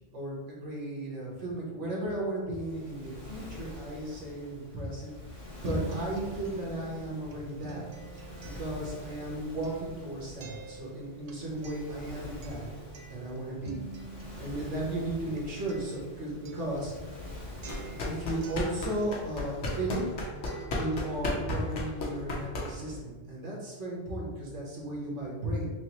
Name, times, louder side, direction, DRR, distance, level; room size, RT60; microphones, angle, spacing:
voice 1, 0.1-7.9 8.1-8.2 8.5-12.7 13.1-13.8 14.4-17.0 17.7-20.0 20.7-25.7, right 1 dB, 90° right, -4 dB, 1.4 m, -35 dB
Waves surf, 2.5-20.0, left 1 dB, 35° left, 0.8 m, -46 dB
Acoustic guitar, 5.2-19.4 19.6-21.2, right 5 dB, 60° right, 0.4 m, -47 dB
sound 1, 17.6-23.0, left 2 dB, 80° left, 1.1 m, -35 dB
6.0 x 2.0 x 2.9 m, 1.3 s
omnidirectional pair, 1.2 m